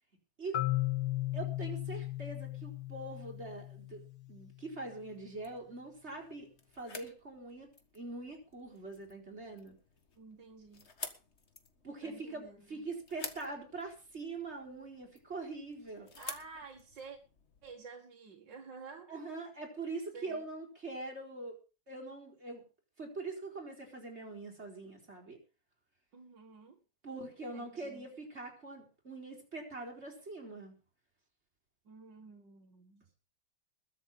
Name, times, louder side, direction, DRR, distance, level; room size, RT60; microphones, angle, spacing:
Marimba xylophone, 0.5-4.4, left 17 dB, 85° left, 2.0 m, -36 dB
voice 1, 1.3-4.0 4.3-6.5 6.8-7.7 7.9-9.8 11.8-16.1 19.1-21.5 21.9-22.6 23.0-25.4 27.0-30.8, right 3 dB, 30° right, 4.4 m, -43 dB
sound 1, 4.9-17.7, left 4 dB, 35° left, 1.7 m, -51 dB
voice 2, 10.2-10.9 12.0-12.8 16.2-17.2 17.6-19.1 20.1-20.5 26.1-26.8 27.5-28.1 31.9-33.0, right 4 dB, 55° right, 2.4 m, -51 dB
21.0 x 7.5 x 5.4 m
omnidirectional pair, 2.3 m